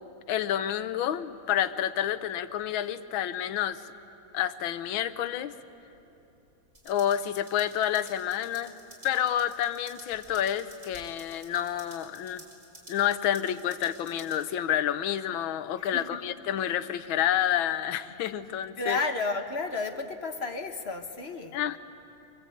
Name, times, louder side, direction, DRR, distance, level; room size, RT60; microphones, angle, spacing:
voice 1, 0.3-3.8 4.3-5.5 6.8-8.8 9.0-12.4 12.9-19.0 21.5-21.8, left 10 dB, 80° left, 12 dB, 1.6 m, -29 dB
sound 1, 6.7-14.4, equal, 30° right, 5.5 m, -52 dB
voice 2, 15.8-16.2 18.8-21.6, left 3 dB, 35° left, 6 dB, 1.3 m, -32 dB
25.5 x 24.5 x 8.5 m, 2.9 s
omnidirectional pair, 2.2 m